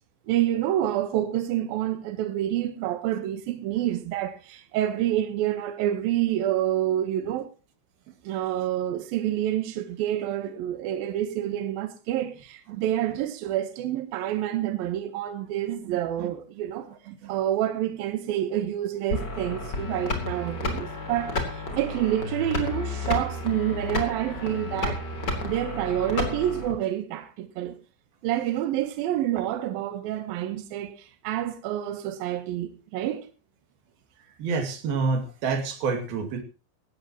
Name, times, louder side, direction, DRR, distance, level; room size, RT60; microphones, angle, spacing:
voice 1, 0.3-7.5 8.2-16.9 17.3-25.1 25.4-27.8 28.2-33.3, right 12 dB, 75° right, 2.2 m, -28 dB
voice 2, 12.7-13.2 15.8-16.3 16.9-17.3 34.4-36.4, right 4 dB, 55° right, 3.7 m, -29 dB
sound 1, 19.1-26.7, left 3 dB, 25° left, 3.0 m, -31 dB
18.5 x 15.5 x 2.9 m
omnidirectional pair, 5.7 m